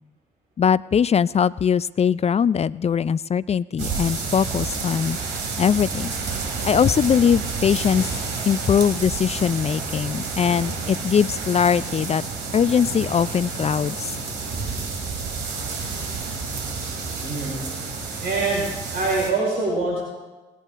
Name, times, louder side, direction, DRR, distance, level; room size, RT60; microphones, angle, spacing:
voice 1, 0.6-5.2 5.6-6.1 6.6-8.1 8.5-12.2 12.5-14.1, left 7 dB, 35° left, 20 dB, 0.4 m, -21 dB
sound 1, 3.8-19.3, right 4 dB, 75° right, 2.7 m, -30 dB
voice 2, 17.2-17.6 18.2-20.0, right 3 dB, 55° right, -4 dB, 5.0 m, -24 dB
20.0 x 8.4 x 3.7 m, 1.2 s
hypercardioid pair, 45°, 19 cm